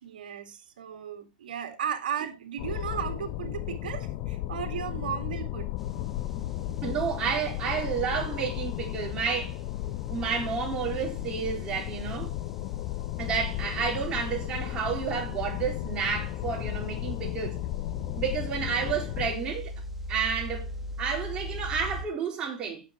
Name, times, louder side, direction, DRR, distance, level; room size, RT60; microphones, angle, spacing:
voice 1, 0.0-5.7, right 8 dB, 85° right, 2.1 m, -35 dB
sound 1, 2.6-19.4, left 15 dB, 40° left, 0.5 m, -34 dB
sound 2, 5.8-22.0, equal, 5° right, 1.3 m, -43 dB
voice 2, 6.8-9.6 10.1-12.3 13.2-17.6 18.1-19.7 20.1-22.8, right 6 dB, 20° right, 4.1 m, -31 dB
17.5 x 7.4 x 3.0 m
supercardioid pair, 145°, 5 cm